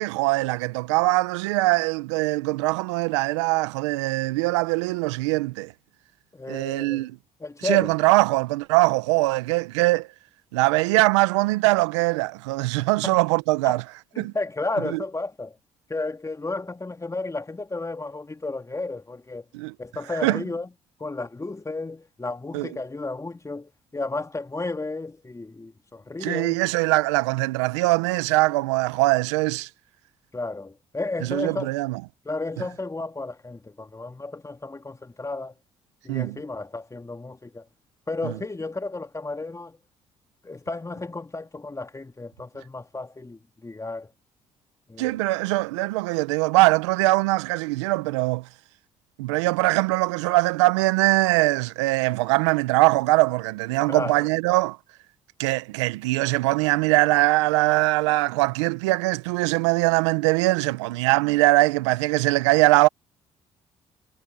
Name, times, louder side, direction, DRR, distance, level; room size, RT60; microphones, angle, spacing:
voice 1, 0.0-5.7 6.5-7.2 7.6-10.1 10.5-13.8 14.2-14.3 14.9-15.0 19.5-19.7 20.2-20.4 22.5-22.7 26.2-29.7 31.2-32.0 36.1-36.4 38.2-38.3 45.0-48.5 49.2-54.8 55.4-62.9, right 21 dB, 85° right, 1.4 m, -22 dB
voice 2, 6.3-7.1 7.4-7.9 12.8-13.2 13.6-13.8 14.1-15.6 15.9-19.4 19.8-20.7 21.0-26.6 30.3-31.7 32.2-35.5 36.0-37.6 38.1-39.8 40.4-44.1 44.9-45.2 53.9-54.3, left 2 dB, 20° left, 2.9 m, -33 dB
hypercardioid pair, 50°, 15 cm